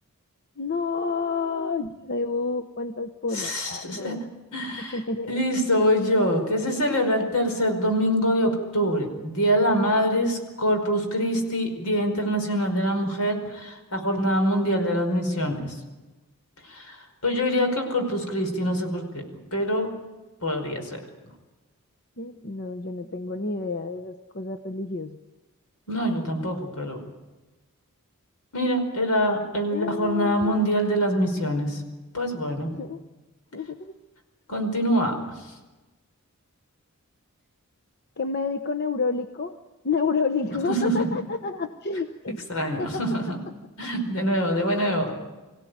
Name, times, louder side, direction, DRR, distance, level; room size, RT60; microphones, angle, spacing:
voice 1, 0.6-4.2 4.8-5.4 22.2-25.2 29.7-30.5 32.7-33.0 33.5-33.9 38.2-39.5 39.8-43.0, left 4 dB, 45° left, 7 dB, 0.9 m, -29 dB
voice 2, 3.3-4.1 4.5-5.0 5.3-15.7 16.7-19.2 19.5-19.9 20.4-21.0 25.9-27.0 28.5-31.8 32.1-32.7 34.5-35.1 40.7-41.1 42.5-43.4 43.8-45.1, equal, 80° left, 5 dB, 5.1 m, -24 dB
24.5 x 16.5 x 9.4 m, 1.1 s
head